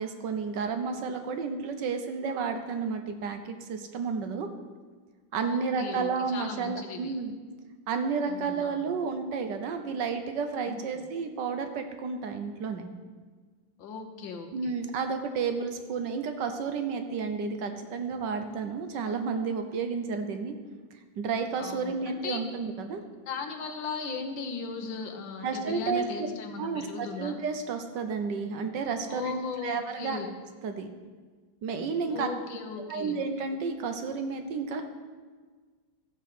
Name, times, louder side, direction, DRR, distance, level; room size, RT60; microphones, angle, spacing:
voice 1, 0.0-4.5 5.3-7.4 7.9-12.9 14.5-20.6 21.2-23.0 25.4-26.0 26.6-30.2 30.6-30.9 31.6-32.3 32.9-34.8, right 5 dB, 65° right, 6 dB, 1.4 m, -31 dB
voice 2, 5.4-7.1 8.3-8.7 10.7-10.8 13.8-14.7 21.6-22.4 23.3-27.4 29.1-30.3 32.1-33.2, left 5 dB, 75° left, 5 dB, 1.8 m, -37 dB
13.0 x 4.7 x 7.6 m, 1.5 s
omnidirectional pair, 2.1 m